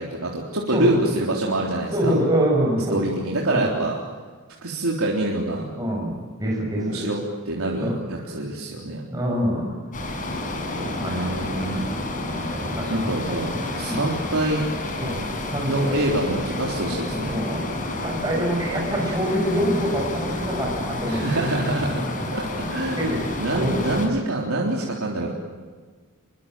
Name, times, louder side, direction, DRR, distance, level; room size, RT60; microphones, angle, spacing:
voice 1, 0.0-2.2 2.9-4.0 4.6-5.7 6.8-9.0 11.1-11.8 12.9-13.5 13.8-14.7 15.7-17.4 21.1-22.0 22.3-23.1 23.4-25.3, right 1 dB, 75° right, -2 dB, 3.7 m, -25 dB
voice 2, 1.9-3.0 3.5-3.7 5.8-7.0 7.8-7.9 8.2-8.3 9.1-9.7 10.7-11.2 11.7-11.9 12.5-13.1 13.9-14.0 15.0-15.7 17.3-17.6 18.0-21.4 23.0-23.7, equal, 15° right, -1 dB, 6.3 m, -25 dB
sound 1, 9.9-24.1, left 2 dB, 40° left, 5.2 m, -30 dB
26.0 x 23.5 x 7.6 m, 1.5 s
head